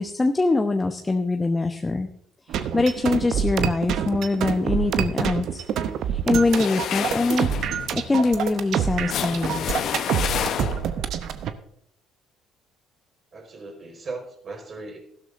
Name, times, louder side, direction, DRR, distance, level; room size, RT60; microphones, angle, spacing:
voice 1, 0.0-2.1 2.5-5.6 6.1-7.5 7.9-9.7, left 3 dB, 20° left, 6 dB, 0.9 m, -23 dB
sound 1, 2.5-11.5, right 8 dB, 60° right, 0.8 m, -26 dB
sound 2, 6.4-11.1, left 9 dB, 55° left, 1.0 m, -30 dB
voice 2, 13.3-15.0, right 3 dB, 40° right, 2 dB, 4.7 m, -37 dB
15.5 x 12.0 x 2.7 m, 0.71 s
hypercardioid pair, 50°, 0 cm